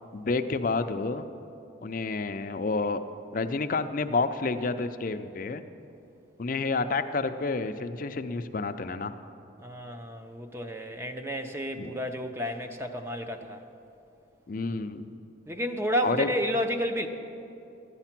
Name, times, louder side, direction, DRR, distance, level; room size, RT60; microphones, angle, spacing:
voice 1, 0.1-1.3 1.8-3.0 3.3-5.6 6.4-9.1 11.8-11.9 14.5-15.1 16.0-16.3, left 3 dB, 45° left, 9 dB, 0.5 m, -29 dB
voice 2, 9.6-13.6 15.5-17.1, equal, 15° right, 6 dB, 0.5 m, -31 dB
12.5 x 9.9 x 5.9 m, 2.7 s
head